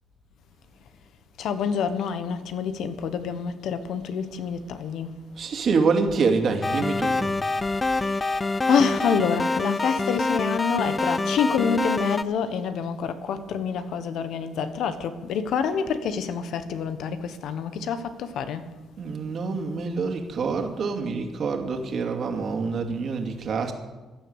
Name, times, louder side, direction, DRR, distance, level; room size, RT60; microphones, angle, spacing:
voice 1, 1.4-5.1 8.0-8.1 8.7-18.6, left 6 dB, 75° left, 1.3 m, -27 dB
voice 2, 5.4-7.4 19.0-23.7, right 4 dB, 55° right, 2.5 m, -26 dB
sound 1, 6.6-12.2, left 3 dB, 25° left, 0.5 m, -26 dB
15.5 x 10.5 x 8.1 m
cardioid pair, 90°, 0 cm